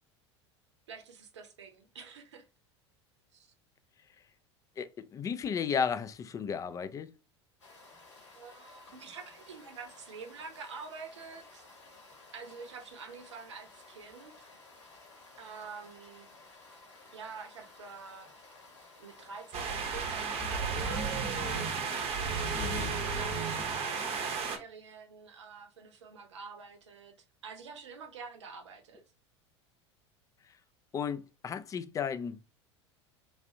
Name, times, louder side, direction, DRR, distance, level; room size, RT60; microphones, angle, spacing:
voice 1, 0.9-2.5 3.3-3.5 8.3-11.7 12.3-14.5 15.4-16.3 17.1-18.3 19.0-22.1 23.0-27.1 27.4-29.0, right 5 dB, 75° right, 0.7 m, -47 dB
voice 2, 4.8-7.1 22.5-22.9 30.9-32.4, left 7 dB, 20° left, 0.4 m, -34 dB
sound 1, 7.6-21.0, left 3 dB, 80° left, 1.4 m, -55 dB
sound 2, 19.5-24.6, right 5 dB, 40° right, 0.7 m, -33 dB
3.4 x 2.5 x 2.6 m
figure-of-eight pair, 80°, 15 cm